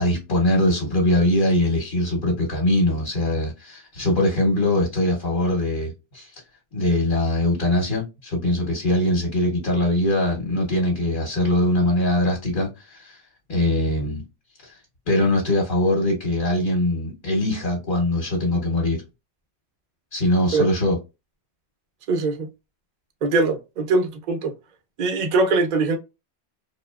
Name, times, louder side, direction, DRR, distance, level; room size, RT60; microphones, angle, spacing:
voice 1, 0.0-6.3 6.7-13.2 13.5-14.2 14.6-14.8 15.1-19.0 20.1-21.0, left 1 dB, 55° left, 0.9 m, -22 dB
voice 2, 22.1-22.5 23.2-24.5 25.0-26.0, right 3 dB, 50° right, 0.6 m, -22 dB
2.8 x 2.2 x 2.2 m
omnidirectional pair, 1.1 m